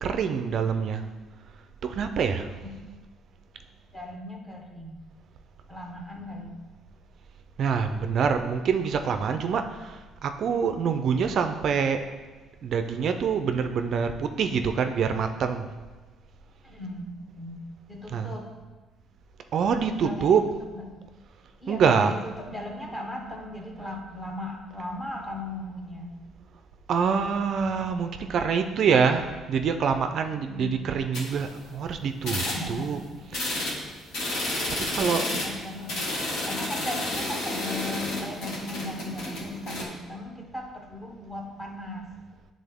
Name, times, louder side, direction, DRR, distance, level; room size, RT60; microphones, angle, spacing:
voice 1, 0.0-1.0 1.8-2.7 7.6-12.0 12.6-15.7 18.1-18.4 19.5-20.5 21.7-22.2 26.9-33.0 33.3-33.7 34.9-35.3, right 6 dB, 50° right, 7 dB, 0.3 m, -25 dB
voice 2, 3.9-5.0 5.7-6.5 16.6-17.6 17.9-18.5 20.0-20.3 20.7-20.8 21.6-26.2 30.3-31.1 32.3-33.2 34.8-42.1, left 1 dB, 10° left, 1 dB, 0.9 m, -37 dB
sound 1, 31.1-31.8 32.2-32.9 33.3-39.8, left 1 dB, 75° left, 1.5 m, -31 dB
9.6 x 3.7 x 3.5 m, 1.2 s
cardioid pair, 160°, 0 cm